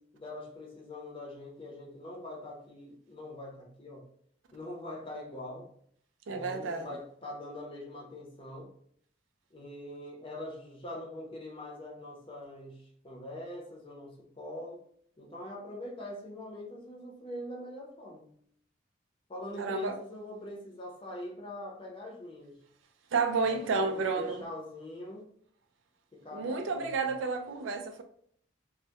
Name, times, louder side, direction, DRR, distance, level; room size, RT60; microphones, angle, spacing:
voice 1, 0.0-4.1 4.5-5.7 6.3-8.7 9.5-14.8 15.2-18.4 19.3-22.6 23.5-25.3 26.1-27.1, left 1 dB, 30° left, 0.6 m, -43 dB
voice 2, 6.3-7.0 19.6-20.0 23.1-24.4 26.3-28.0, right 4 dB, 90° right, 0.4 m, -31 dB
2.2 x 2.1 x 2.8 m
head